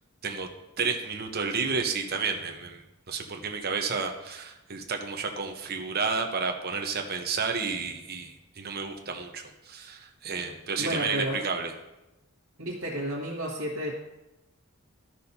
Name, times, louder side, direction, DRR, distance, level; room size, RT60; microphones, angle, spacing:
voice 1, 0.8-2.8 3.1-11.7, right 5 dB, 45° right, 4 dB, 0.9 m, -31 dB
voice 2, 10.8-11.4 12.6-13.9, equal, 75° right, -8 dB, 1.7 m, -31 dB
13.5 x 6.2 x 2.8 m, 0.97 s
head